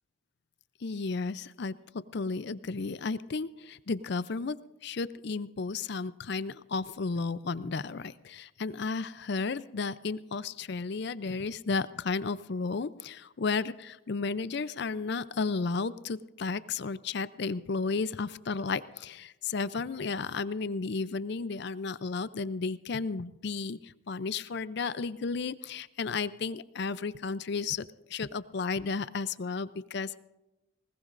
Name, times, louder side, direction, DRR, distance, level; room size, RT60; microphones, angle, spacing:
voice 1, 0.8-4.6 4.8-30.1, left 4 dB, 55° left, 16 dB, 0.5 m, -33 dB
20.5 x 19.5 x 2.5 m, 0.99 s
head